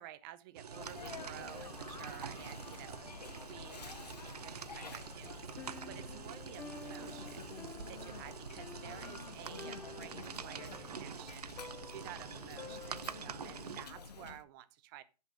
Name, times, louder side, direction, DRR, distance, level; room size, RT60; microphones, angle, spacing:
voice 1, 0.0-3.1 3.4-15.0, right 13 dB, 30° right, 12 dB, 0.7 m, -52 dB
sound 1, 0.6-13.9, right 7 dB, 70° right, 0.6 m, -47 dB
Sneeze, 0.7-14.4, left 4 dB, 75° left, 0.8 m, -49 dB
Piano, 5.6-13.4, left 5 dB, 10° left, 0.4 m, -52 dB
10.0 x 4.0 x 5.9 m, 0.32 s
figure-of-eight pair, 115°, 21 cm